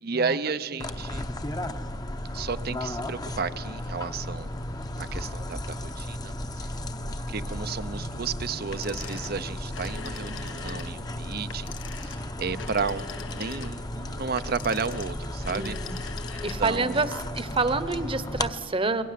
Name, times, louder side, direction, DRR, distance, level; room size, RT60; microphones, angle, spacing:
voice 1, 0.0-1.3 2.3-4.7 4.9-6.7 7.0-17.1, right 5 dB, 50° right, 12 dB, 0.7 m, -33 dB
sound 1, 0.8-18.5, left 1 dB, 20° left, 0.8 m, -34 dB
sound 2, 8.7-16.8, left 7 dB, 85° left, 1.6 m, -42 dB
voice 2, 15.5-16.0 16.4-17.1 17.3-19.0, right 3 dB, 25° right, 12 dB, 1.0 m, -28 dB
27.5 x 23.0 x 7.6 m, 2.3 s
head